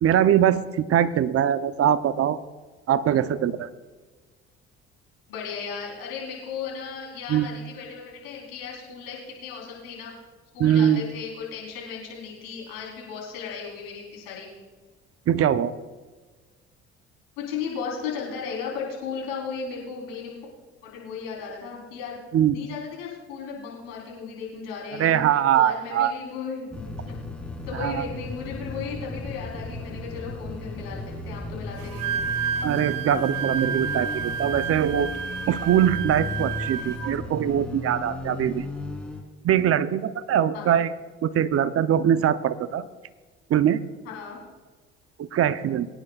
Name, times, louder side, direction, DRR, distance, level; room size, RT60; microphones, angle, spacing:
voice 1, 0.0-2.4 2.9-3.7 7.3-7.5 10.6-11.0 15.3-15.7 22.3-22.6 25.0-26.2 27.8-28.0 32.6-35.1 35.5-38.7 39.4-40.9 41.2-42.8 43.5-43.8 45.2-45.9, right 10 dB, 50° right, 13 dB, 0.8 m, -22 dB
voice 2, 5.3-10.2 10.5-14.5 17.4-20.5 20.8-22.2 22.5-27.2 27.6-32.2 40.5-40.7 44.0-44.4, left 6 dB, 90° left, -2 dB, 4.0 m, -35 dB
sound 1, 26.7-39.2, left 2 dB, 5° left, 3.6 m, -35 dB
Wind instrument woodwind instrument, 31.8-37.1, right 7 dB, 90° right, 1.0 m, -30 dB
22.5 x 10.0 x 2.4 m, 1.3 s
hypercardioid pair, 65°, 29 cm